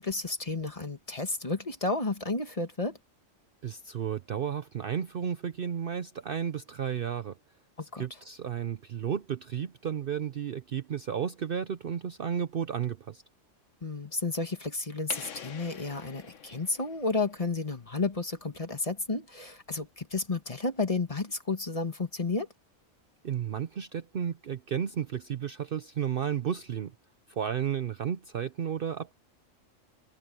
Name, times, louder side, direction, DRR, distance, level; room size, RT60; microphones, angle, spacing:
voice 1, 0.0-3.0 7.8-8.0 13.8-22.5, left 3 dB, 25° left, 1.6 m, -32 dB
voice 2, 3.6-7.4 8.0-13.2 23.2-26.9 27.3-29.1, right 8 dB, 55° right, 0.7 m, -33 dB
sound 1, 15.1-17.7, left 7 dB, 70° left, 1.4 m, -45 dB
omnidirectional pair, 1.3 m